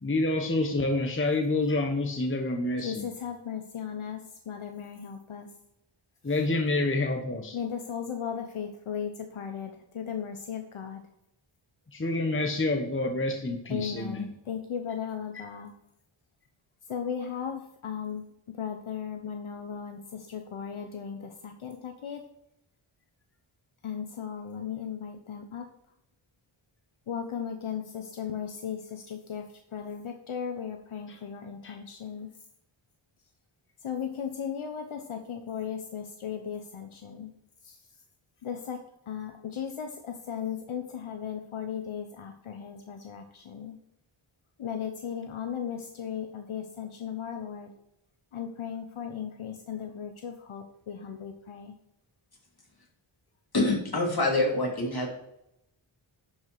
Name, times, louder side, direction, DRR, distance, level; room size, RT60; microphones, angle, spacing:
voice 1, 0.0-3.1 6.2-7.6 11.9-14.3 15.3-15.5 31.1-31.2 31.6-31.8, left 2 dB, 25° left, 4 dB, 1.0 m, -28 dB
voice 2, 2.8-4.2 4.5-5.5 7.5-9.1 9.4-9.7 10.0-11.0 13.7-15.7 16.9-18.2 18.6-20.0 20.3-21.2 21.6-22.2 23.8-25.6 27.1-28.8 29.3-29.4 29.7-32.3 33.8-37.3 38.4-38.8 39.1-39.9 40.3-43.2 43.5-43.7 44.6-47.7 48.3-51.7, left 8 dB, 75° left, 5 dB, 0.9 m, -36 dB
voice 3, 53.5-55.1, left 2 dB, 45° left, -1 dB, 2.9 m, -26 dB
11.5 x 4.9 x 4.7 m, 0.82 s
wide cardioid pair, 85°, 50 cm